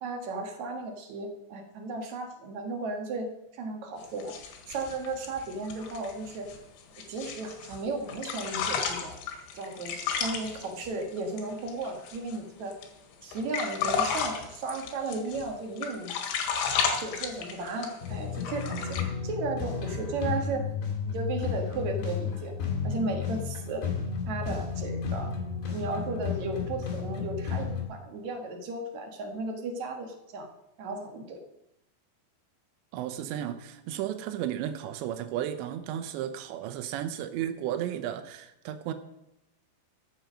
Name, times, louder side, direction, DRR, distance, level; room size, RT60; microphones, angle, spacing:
voice 1, 0.0-3.3 3.5-4.4 4.7-6.5 7.1-9.2 9.5-12.7 13.2-16.1 17.0-20.6 21.1-22.5 22.8-23.8 24.3-25.3 25.7-30.5 30.8-31.4, right 3 dB, 55° right, 4 dB, 2.2 m, -35 dB
sound 1, 4.0-7.8 8.1-12.4 12.7-12.9 13.2-15.5 15.8-18.1 18.4-19.0, left 6 dB, 85° left, 4.0 m, -33 dB
sound 2, 18.0-27.8, left 6 dB, 65° left, 4.5 m, -33 dB
voice 2, 32.9-38.9, right 11 dB, 90° right, 9 dB, 3.1 m, -34 dB
14.0 x 8.8 x 6.3 m, 0.87 s
omnidirectional pair, 5.0 m